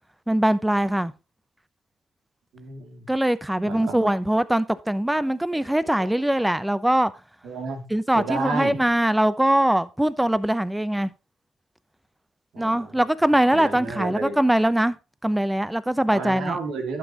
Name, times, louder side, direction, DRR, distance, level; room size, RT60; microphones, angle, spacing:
voice 1, 0.3-1.1 3.1-7.1 7.9-11.1 12.6-15.0 15.2-16.6, right 1 dB, 5° right, 0.8 m, -22 dB
voice 2, 2.5-3.1 3.6-4.1 5.2-5.3 5.8-6.1 7.4-7.8 8.1-8.8 12.5-13.0 13.5-14.4 16.1-17.0, right 4 dB, 75° right, 2.6 m, -32 dB
11.5 x 7.3 x 3.0 m
supercardioid pair, 65°, 0 cm